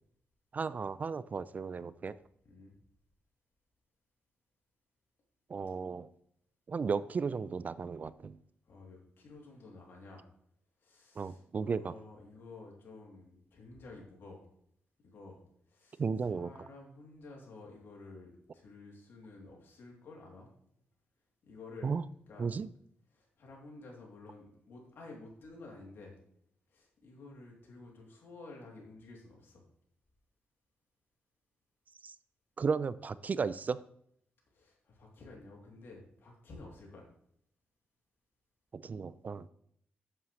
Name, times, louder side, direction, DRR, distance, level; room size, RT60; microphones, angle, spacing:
voice 1, 0.5-2.1 5.5-6.1 6.7-8.4 11.2-11.9 16.0-16.5 21.8-22.0 22.4-22.7 32.0-32.1 32.6-33.8 38.7-39.5, right 5 dB, 40° right, 16 dB, 0.3 m, -34 dB
voice 2, 2.4-2.8 8.6-10.3 10.8-14.5 15.0-15.4 15.7-20.5 21.4-21.9 22.3-22.5 23.1-26.2 26.7-29.6 34.5-37.1, left 3 dB, 65° left, -1 dB, 3.0 m, -52 dB
8.6 x 7.4 x 3.2 m, 0.68 s
cardioid pair, 80°, 4 cm